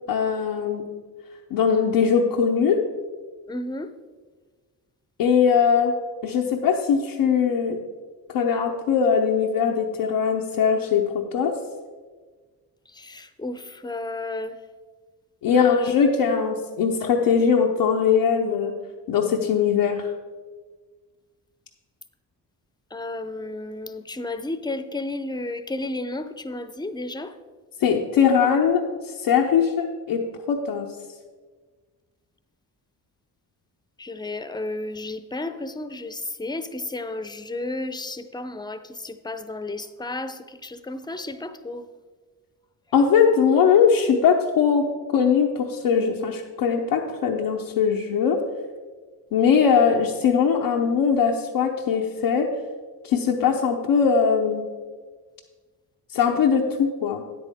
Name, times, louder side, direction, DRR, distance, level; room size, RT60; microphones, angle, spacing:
voice 1, 0.1-0.9 1.5-2.8 5.2-5.9 6.2-7.8 8.3-11.5 15.4-18.7 19.1-20.1 27.8-28.8 29.2-30.9 42.9-44.9 45.1-48.4 49.3-52.5 53.0-54.7 56.1-57.2, left 6 dB, 90° left, -2 dB, 0.8 m, -20 dB
voice 2, 3.5-3.9 13.0-14.5 15.5-15.8 22.9-27.3 34.0-41.8, left 2 dB, 10° left, 12 dB, 0.6 m, -32 dB
9.5 x 8.6 x 3.5 m, 1.4 s
supercardioid pair, 55°, 41 cm